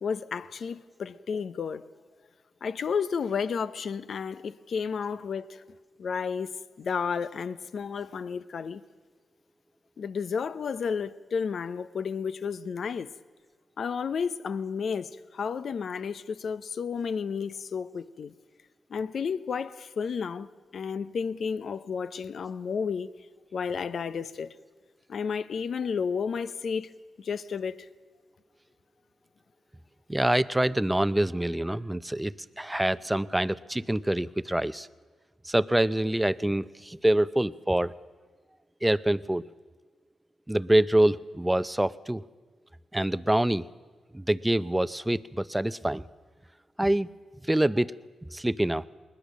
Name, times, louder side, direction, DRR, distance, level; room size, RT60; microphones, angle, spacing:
voice 1, 0.0-1.9 2.6-5.6 6.0-6.5 6.8-8.8 10.0-13.1 13.8-18.3 18.9-20.5 20.7-23.1 23.5-24.5 25.1-26.9 27.2-27.9, left 6 dB, 65° left, 0.7 m, -32 dB
voice 2, 30.1-34.9 35.4-37.9 38.8-39.4 40.5-42.2 42.9-43.6 44.1-46.0 46.8-47.1 47.5-47.9 48.3-48.9, right 1 dB, 10° right, 0.6 m, -25 dB
20.5 x 20.0 x 6.4 m
supercardioid pair, 45°, 0 cm